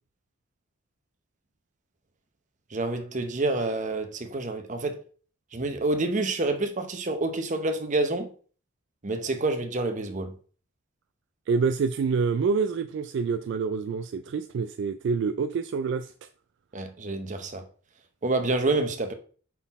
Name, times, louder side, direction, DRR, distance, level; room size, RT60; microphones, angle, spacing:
voice 1, 2.7-5.0 5.5-8.3 9.0-10.3 16.7-17.6 18.2-19.1, right 2 dB, 40° right, 0.8 m, -28 dB
voice 2, 11.5-16.1, right 5 dB, 60° right, 0.3 m, -27 dB
5.8 x 4.1 x 4.1 m
head